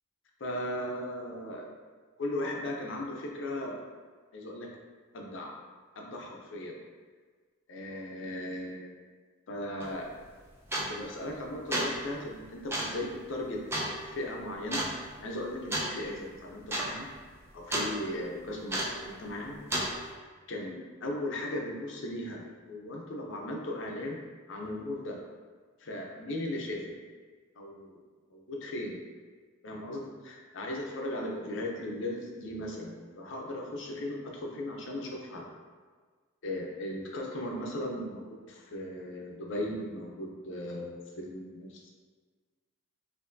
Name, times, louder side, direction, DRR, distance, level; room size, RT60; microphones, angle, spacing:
voice 1, 0.4-1.7 2.2-3.8 4.3-4.7 5.1-5.5 6.0-6.8 7.7-9.0 9.5-10.1 10.9-13.6 14.0-14.8 15.2-17.1 17.5-19.6 20.0-20.1 20.5-24.2 24.5-25.2 25.8-27.0 27.6-28.0 28.3-29.0 29.6-35.5 36.4-41.9, left 1 dB, 65° left, 0 dB, 0.6 m, -37 dB
sound 1, 9.8-9.9 10.7-11.1 11.5-12.0 12.7-13.0 13.7-13.9 14.7-14.9 15.7-15.9 16.2-16.3 16.6-16.9 17.2-17.9 18.7-19.0 19.7-19.9, right 1 dB, 10° right, 0.5 m, -31 dB
4.3 x 2.6 x 2.6 m, 1.5 s
head